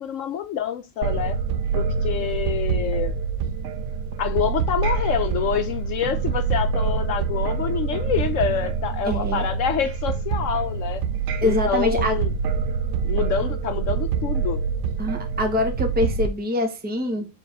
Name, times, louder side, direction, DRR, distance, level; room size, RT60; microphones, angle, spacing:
voice 1, 0.0-1.4 1.7-3.1 4.2-11.0 11.4-12.3 13.0-14.6, left 8 dB, 75° left, 1.0 m, -26 dB
sound 1, 1.0-16.3, right 6 dB, 70° right, 0.9 m, -25 dB
voice 2, 9.0-9.5 11.4-12.2 15.0-17.3, left 1 dB, 10° right, 1.0 m, -24 dB
7.0 x 3.3 x 5.9 m
omnidirectional pair, 1.4 m